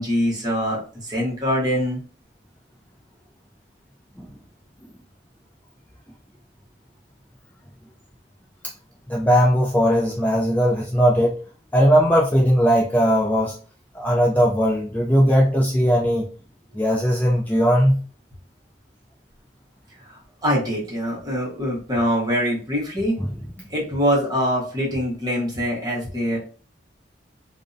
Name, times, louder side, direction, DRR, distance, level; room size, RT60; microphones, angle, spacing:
voice 1, 0.0-2.0 20.4-23.2 23.7-26.4, equal, 20° right, -5 dB, 0.8 m, -23 dB
voice 2, 9.1-11.4 11.7-13.5 13.9-16.3 16.7-18.0 23.2-23.3, equal, 10° left, -3 dB, 0.3 m, -18 dB
2.4 x 2.0 x 2.5 m, 0.40 s
head